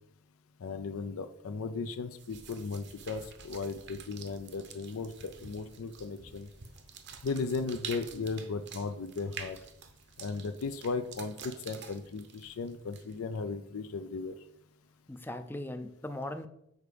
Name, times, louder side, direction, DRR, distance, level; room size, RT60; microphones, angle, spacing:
voice 1, 0.6-6.5 7.2-9.6 10.2-14.4, left 4 dB, 75° left, 10 dB, 0.4 m, -36 dB
sound 1, 2.2-13.4, right 6 dB, 55° right, 0.8 m, -48 dB
voice 2, 15.1-16.5, left 1 dB, 10° left, 10 dB, 0.4 m, -39 dB
6.5 x 4.6 x 5.1 m, 0.77 s
head